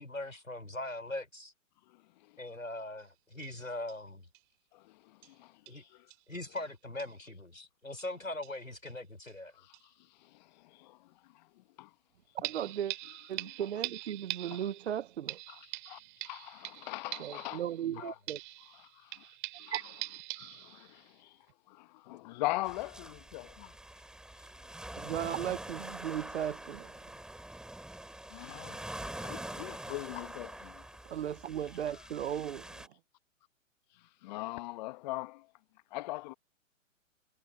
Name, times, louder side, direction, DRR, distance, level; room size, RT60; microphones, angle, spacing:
voice 1, 0.0-1.5 2.4-4.3 5.7-5.8 6.3-9.5 17.8-18.1, left 1 dB, 90° left, 6.1 m, -41 dB
sound 1, 3.0-3.1 3.4-3.5 3.9-4.0 4.3-4.4 5.2-5.3 5.7-5.8 6.1-6.2 6.6-6.7 7.0-7.2 8.0-8.1 8.4-9.0 9.3-9.4 9.7-9.8 12.4-18.0 18.3-21.1 21.5-21.6, right 17 dB, 40° right, 5.0 m, -43 dB
voice 2, 4.7-5.8 9.5-9.8 10.2-11.9 13.4-13.5 14.4-14.6 15.5-15.6 15.8-17.6 18.0-18.1 19.0-19.3 19.6-19.7 20.4-21.4 21.7-23.7 28.3-30.8 34.2-35.5 35.9-36.3, left 19 dB, 35° left, 1.6 m, -41 dB
voice 3, 12.3-12.9 13.3-15.4 17.2-18.4 19.7-19.8 25.0-27.0 31.0-32.9, right 10 dB, 55° right, 1.3 m, -36 dB
sound 2, 22.6-32.9, right 1 dB, ahead, 3.2 m, -45 dB
figure-of-eight pair, 120°, 39 cm